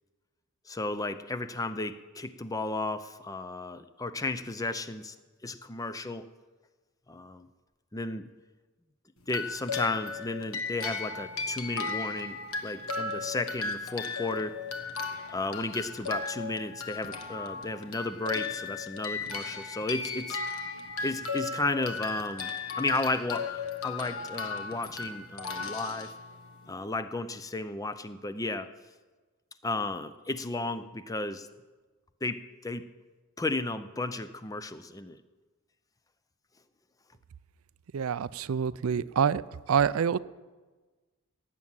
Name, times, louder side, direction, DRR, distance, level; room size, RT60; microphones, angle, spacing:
voice 1, 0.7-5.2 5.4-6.3 7.1-7.5 7.9-8.3 9.3-14.6 15.3-20.4 21.0-26.1 26.7-28.7 29.6-31.5 32.2-32.9 33.4-35.2, left 2 dB, 15° left, 12 dB, 0.5 m, -34 dB
sound 1, 9.3-26.7, left 4 dB, 65° left, 1.4 m, -36 dB
voice 2, 37.9-39.4 39.7-40.2, right 7 dB, 70° right, 18 dB, 0.4 m, -26 dB
17.0 x 7.3 x 8.9 m, 1.3 s
head